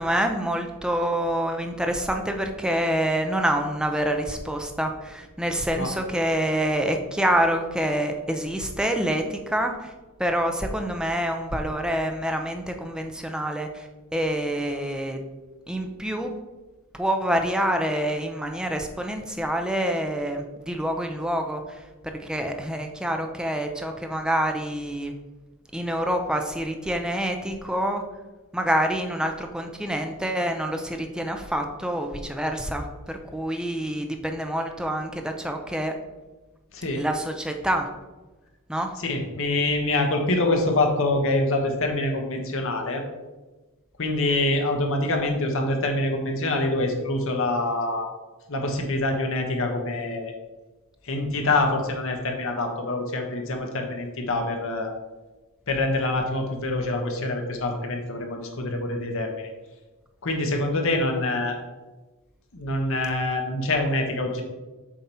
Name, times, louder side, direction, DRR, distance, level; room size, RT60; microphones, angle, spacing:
voice 1, 0.0-9.9 10.2-13.9 14.1-15.2 15.7-16.3 17.0-21.8 22.2-25.1 25.7-28.0 28.5-35.9 37.0-37.9 38.7-38.9, right 1 dB, 5° right, 4 dB, 0.5 m, -27 dB
voice 2, 39.0-43.0 44.0-48.1 48.5-50.3 51.0-54.9 55.7-59.5 60.2-61.6 62.5-64.4, left 2 dB, 60° left, 3 dB, 1.1 m, -25 dB
7.4 x 2.9 x 5.5 m, 1.2 s
head